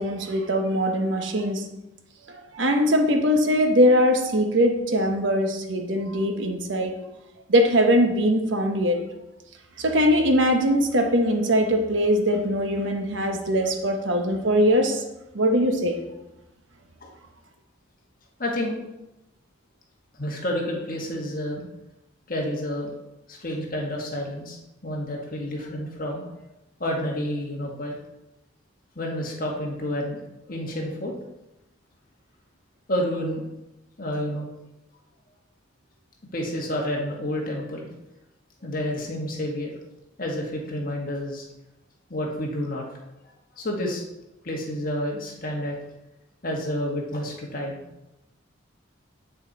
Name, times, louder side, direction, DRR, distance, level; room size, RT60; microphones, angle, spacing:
voice 1, 0.0-1.7 2.3-7.0 7.5-9.0 9.8-15.0 15.3-16.0, equal, 75° right, 4 dB, 1.1 m, -21 dB
voice 2, 18.4-18.8 20.2-21.6 22.3-22.9 23.3-24.6 24.8-26.2 26.8-27.9 28.9-30.2 30.5-31.1 32.9-33.4 34.0-34.5 36.3-37.9 38.6-39.7 40.2-41.5 42.1-42.8 43.6-44.0 44.4-45.7 46.4-47.8, left 1 dB, 45° left, -1 dB, 1.6 m, -29 dB
8.1 x 6.6 x 4.2 m, 0.93 s
head